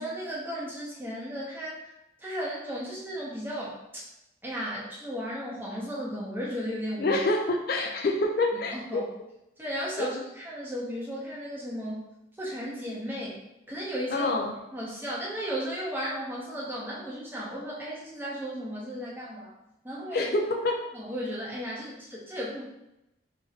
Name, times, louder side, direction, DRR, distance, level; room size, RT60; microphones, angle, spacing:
voice 1, 0.0-1.9 2.2-4.0 4.4-7.2 8.7-9.1 9.6-12.1 12.4-13.4 13.7-14.3 14.7-19.5 19.8-20.3 20.9-22.6, equal, 10° right, -6 dB, 0.9 m, -35 dB
voice 2, 7.0-9.0 10.0-10.1 14.1-14.5 20.1-20.8, left 2 dB, 55° left, 1 dB, 0.4 m, -26 dB
3.1 x 2.5 x 4.1 m, 0.88 s
head